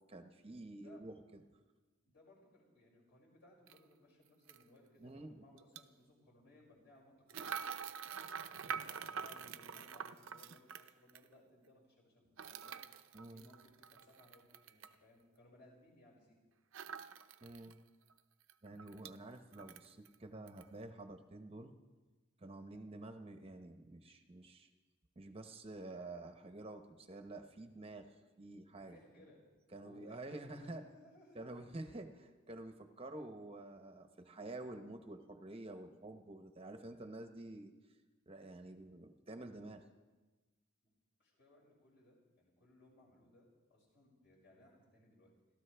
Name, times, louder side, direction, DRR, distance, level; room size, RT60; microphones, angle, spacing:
voice 1, 0.1-1.4 5.0-5.4 13.1-13.4 17.4-17.8 18.6-21.8 22.4-24.7 25.2-29.0 29.7-30.8 31.4-37.7 38.3-39.8, right 2 dB, 30° right, 6 dB, 0.8 m, -49 dB
voice 2, 0.7-1.0 2.0-7.7 8.5-12.8 13.3-16.4 28.7-29.4 29.8-31.5 41.2-45.3, left 1 dB, 55° left, -4 dB, 6.0 m, -64 dB
sound 1, 3.7-3.8 4.5-4.6 5.6-5.8 7.3-11.2 12.4-14.9 16.7-17.7 18.1-18.2 18.5-19.2 19.5-20.1 20.5-20.6, right 7 dB, 70° right, 0.7 m, -46 dB
29.5 x 13.5 x 3.4 m, 1.2 s
head